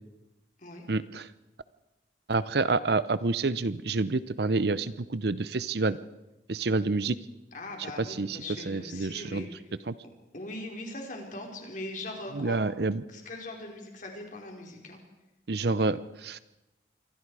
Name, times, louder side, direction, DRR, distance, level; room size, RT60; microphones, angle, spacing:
voice 1, 0.9-1.3 2.3-6.0 6.5-7.2 8.0-9.5 9.9-10.0 12.3-13.0 15.5-16.4, right 3 dB, 60° right, 16 dB, 0.7 m, -28 dB
voice 2, 7.5-9.5 10.3-12.6 13.1-15.0, left 2 dB, 45° left, 1 dB, 4.6 m, -40 dB
27.5 x 23.5 x 4.9 m, 0.97 s
head